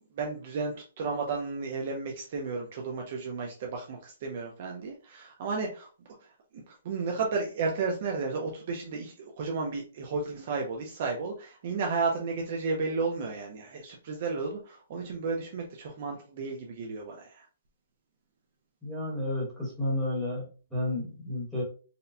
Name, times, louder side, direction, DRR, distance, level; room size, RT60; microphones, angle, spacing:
voice 1, 0.1-5.9 6.5-17.5, right 4 dB, 30° right, 1 dB, 0.5 m, -33 dB
voice 2, 18.8-21.6, left 1 dB, ahead, -6 dB, 1.1 m, -31 dB
4.0 x 2.1 x 2.6 m, 0.37 s
hypercardioid pair, 180°, 0 cm